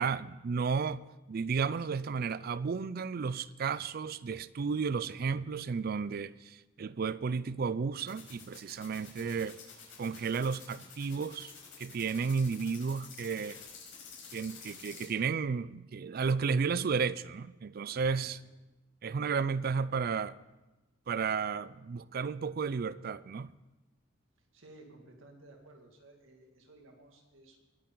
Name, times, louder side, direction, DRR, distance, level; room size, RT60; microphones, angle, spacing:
voice 1, 0.0-9.6 10.0-11.5 11.8-13.6 14.3-18.4 19.0-20.4 21.1-23.5, right 5 dB, 50° right, 0.4 m, -33 dB
sound 1, 8.1-15.1, left 6 dB, 75° left, 4.7 m, -50 dB
voice 2, 17.8-18.5 24.5-27.6, right 2 dB, 75° right, 2.1 m, -56 dB
20.0 x 8.8 x 3.9 m
head